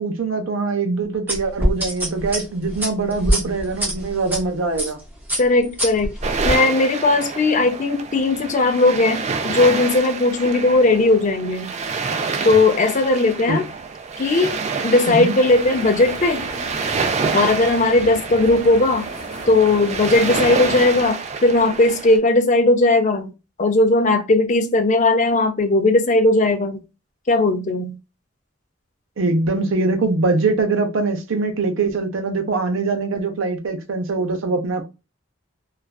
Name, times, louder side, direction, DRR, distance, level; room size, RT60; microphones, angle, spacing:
voice 1, 0.0-5.0 13.5-13.6 15.1-15.4 29.2-34.9, right 3 dB, 80° right, 0.6 m, -22 dB
sound 1, 1.3-4.4 4.8-5.0 5.3-6.6, equal, 10° right, 1.0 m, -23 dB
voice 2, 5.4-6.1 6.4-11.7 12.4-13.7 14.2-16.5 17.3-19.1 19.5-23.3 23.6-26.8 27.3-28.0, left 2 dB, 35° left, 0.5 m, -17 dB
sound 2, 6.2-22.2, right 5 dB, 35° right, 0.3 m, -27 dB
sound 3, 15.5-21.1, left 2 dB, 85° left, 0.8 m, -38 dB
2.4 x 2.3 x 2.3 m
head